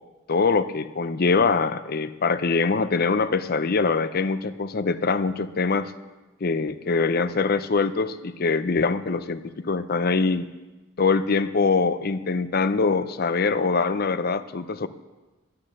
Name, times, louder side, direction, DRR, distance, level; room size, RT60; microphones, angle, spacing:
voice 1, 0.3-5.9 6.4-10.5 11.0-14.9, left 4 dB, 45° left, 12 dB, 0.5 m, -23 dB
12.0 x 9.7 x 6.5 m, 1.1 s
head